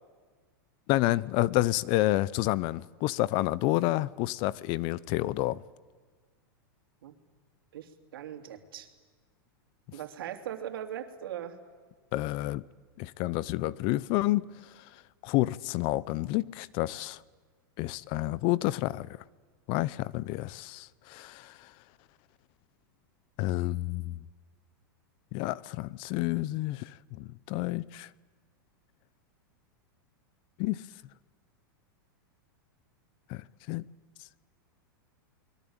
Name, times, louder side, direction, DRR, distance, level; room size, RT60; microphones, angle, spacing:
voice 1, 0.9-5.6 12.1-12.6 13.0-14.5 15.2-17.2 17.8-19.1 19.7-21.5 23.4-24.2 25.3-26.9 27.2-28.1 30.6-30.8 33.3-33.8, left 17 dB, 45° left, 0.8 m, -29 dB
voice 2, 7.7-8.9 9.9-11.6, right 10 dB, 80° right, 3.1 m, -40 dB
30.0 x 22.0 x 9.0 m
hypercardioid pair, 130°, 12 cm